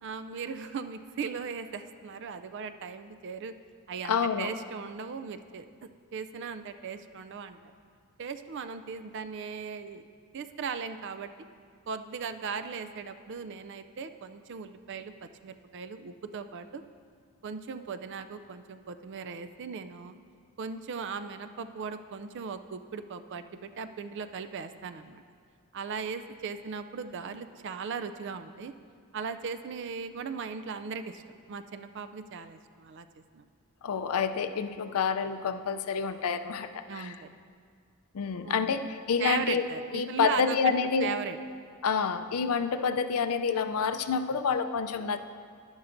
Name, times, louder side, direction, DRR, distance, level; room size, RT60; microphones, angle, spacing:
voice 1, 0.0-3.6 3.9-7.6 8.2-10.1 10.3-11.3 11.9-16.8 17.4-20.1 20.6-25.2 25.7-28.7 29.1-31.2 31.5-33.1 33.3-33.5 36.9-37.3 38.4-38.7 39.2-40.7 41.0-41.4, right 6 dB, 55° right, 10 dB, 0.4 m, -38 dB
voice 2, 4.0-4.5 33.8-37.1 38.1-39.7 39.9-41.1 41.8-45.2, left 6 dB, 75° left, 10 dB, 0.4 m, -28 dB
11.0 x 11.0 x 2.6 m, 2.1 s
head